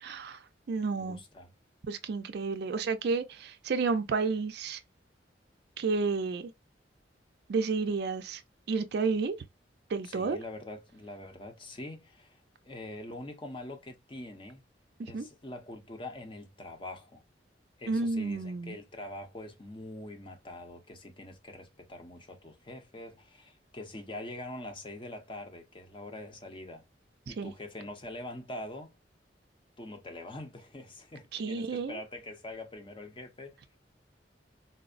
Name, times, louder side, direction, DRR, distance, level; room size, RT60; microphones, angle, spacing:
voice 1, 0.0-1.2 1.9-4.8 5.8-6.5 7.5-8.4 8.7-9.4 9.9-10.4 15.0-15.3 17.9-18.8 27.4-27.5 31.3-32.0, right 4 dB, 65° right, 0.4 m, -31 dB
voice 2, 1.0-1.5 10.0-14.6 15.0-17.2 17.8-26.9 27.2-29.0 29.8-33.6, left 1 dB, 30° left, 0.7 m, -44 dB
4.2 x 2.0 x 2.4 m
head